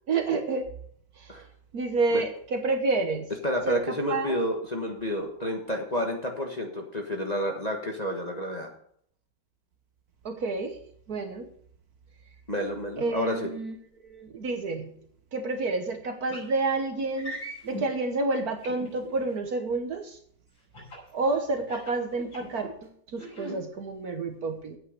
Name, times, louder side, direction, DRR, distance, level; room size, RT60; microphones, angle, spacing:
voice 1, 0.1-0.7 1.2-1.4 1.7-3.3 3.7-4.4 10.2-10.8 11.1-11.5 13.0-13.8 14.0-14.9 15.3-17.3 17.6-20.2 21.1-24.8, right 3 dB, 55° right, 6 dB, 1.5 m, -29 dB
voice 2, 3.4-8.7 12.5-13.5, equal, 25° left, 1 dB, 1.3 m, -30 dB
sound 1, 16.3-16.5 17.2-17.9 18.6-19.2 20.7-21.1 21.6-22.7 23.2-23.6, right 1 dB, 85° left, 6.5 m, -39 dB
8.8 x 8.7 x 6.6 m, 0.63 s
omnidirectional pair, 2.1 m